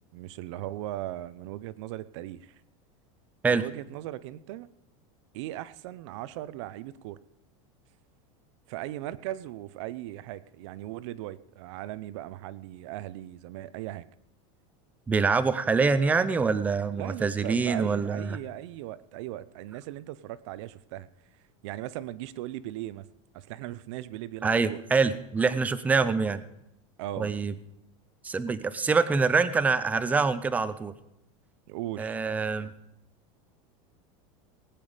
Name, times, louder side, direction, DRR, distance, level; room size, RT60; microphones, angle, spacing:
voice 1, 0.1-2.6 3.5-4.7 5.3-7.2 8.7-14.1 16.9-21.1 21.6-23.1 23.3-24.8 25.1-25.2 27.0-27.4 31.7-32.2, right 14 dB, 60° right, 16 dB, 0.7 m, -38 dB
voice 2, 15.1-18.4 24.4-26.4 27.2-27.5 28.2-30.9 32.0-32.7, right 4 dB, 10° right, 13 dB, 0.5 m, -25 dB
19.5 x 9.2 x 5.0 m, 0.86 s
supercardioid pair, 170°, 17 cm